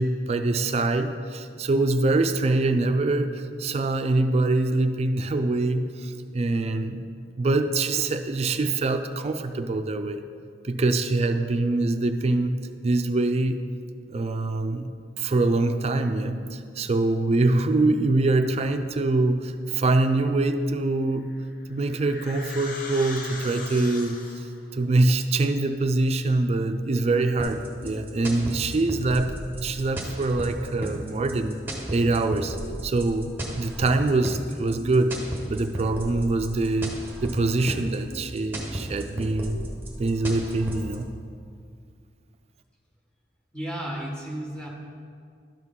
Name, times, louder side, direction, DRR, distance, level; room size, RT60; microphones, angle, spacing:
voice 1, 0.0-7.0 7.4-10.2 10.6-13.6 14.1-21.3 21.7-24.5 24.7-29.3 29.6-31.6 31.9-32.6 32.8-35.1 35.5-39.6 40.0-41.1, right 2 dB, 35° right, 8 dB, 0.4 m, -24 dB
sound 1, 21.2-24.6, left 3 dB, 45° left, 0.8 m, -39 dB
sound 2, 27.4-41.0, right 1 dB, 10° right, 1.0 m, -34 dB
voice 2, 43.5-44.7, right 1 dB, 5° left, -2 dB, 1.3 m, -33 dB
12.0 x 6.1 x 3.7 m, 2.2 s
head